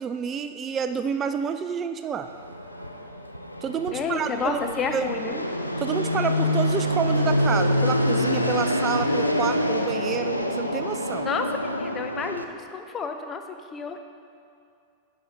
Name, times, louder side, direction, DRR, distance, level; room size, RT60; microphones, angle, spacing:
voice 1, 0.0-2.3 3.6-4.6 4.9-5.1 5.8-11.3, right 7 dB, 25° right, 9 dB, 0.3 m, -29 dB
Fixed-wing aircraft airplane, 2.2-12.4, left 1 dB, 90° left, 0.4 m, -26 dB
voice 2, 3.9-5.5 11.3-11.5 11.8-13.4 13.7-14.0, left 5 dB, 25° left, 6 dB, 0.6 m, -30 dB
10.5 x 5.1 x 4.1 m, 2.5 s
figure-of-eight pair, 90°, 0 cm